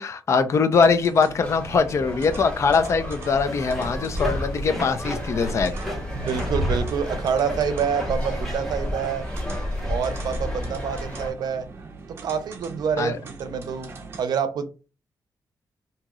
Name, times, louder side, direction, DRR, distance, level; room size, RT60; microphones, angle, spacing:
voice 1, 0.0-5.7 13.0-13.2, left 5 dB, 40° left, 9 dB, 0.5 m, -22 dB
sound 1, 0.7-14.2, right 3 dB, 35° right, 0.6 m, -42 dB
sound 2, 1.4-11.3, left 1 dB, 15° left, 1.9 m, -33 dB
sound 3, 3.5-10.8, equal, ahead, 1.1 m, -32 dB
voice 2, 6.1-9.3 9.8-11.7 12.2-13.9 14.2-14.9, right 6 dB, 75° right, 10 dB, 0.6 m, -27 dB
2.9 x 2.8 x 3.7 m, 0.33 s
wide cardioid pair, 170°, 7 cm